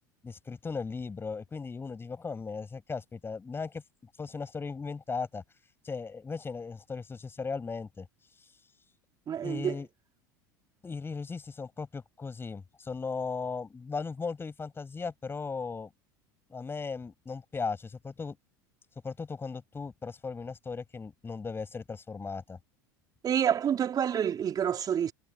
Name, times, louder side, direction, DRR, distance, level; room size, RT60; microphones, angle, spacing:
voice 1, 0.2-3.8 4.2-5.4 5.8-8.1 9.4-9.9 10.8-15.9 16.5-18.4 19.0-22.6, left 4 dB, 20° left, 7.8 m, -37 dB
voice 2, 9.3-9.8 23.2-25.1, right 9 dB, 35° right, 3.9 m, -28 dB
hypercardioid pair, 80°, 11 cm